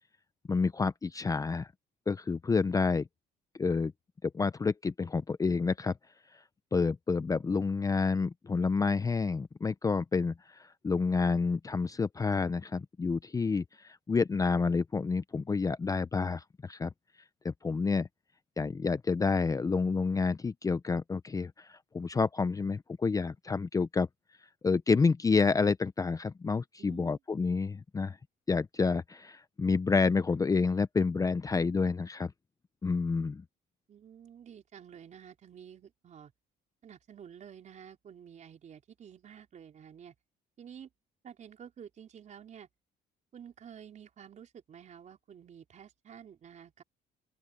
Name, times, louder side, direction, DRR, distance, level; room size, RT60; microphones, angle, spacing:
voice 1, 0.5-1.7 2.1-3.1 3.6-3.9 4.2-5.9 6.7-16.9 17.4-18.1 18.6-24.1 24.6-28.2 28.5-32.3 32.8-33.4, left 4 dB, 20° left, 0.6 m, -29 dB
voice 2, 26.8-27.2 33.9-36.3 36.8-40.1 40.6-40.9 41.2-42.7 43.3-46.8, right 8 dB, 45° right, 4.2 m, -50 dB
open air
cardioid pair, 110°, 17 cm